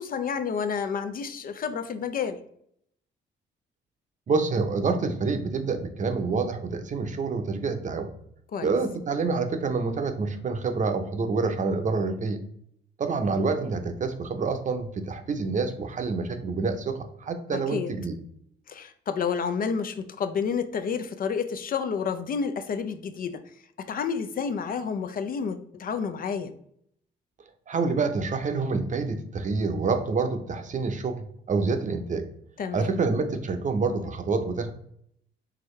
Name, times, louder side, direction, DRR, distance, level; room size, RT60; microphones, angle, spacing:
voice 1, 0.0-2.4 8.5-8.7 17.5-17.9 18.7-23.4 23.8-26.5 32.6-32.9, left 6 dB, 50° left, 9 dB, 0.5 m, -30 dB
voice 2, 4.3-8.1 8.6-12.4 13.0-18.1 27.7-32.2 32.7-34.7, right 4 dB, 40° right, 7 dB, 0.7 m, -27 dB
4.9 x 3.5 x 3.1 m, 0.70 s
cardioid pair, 105°, 19 cm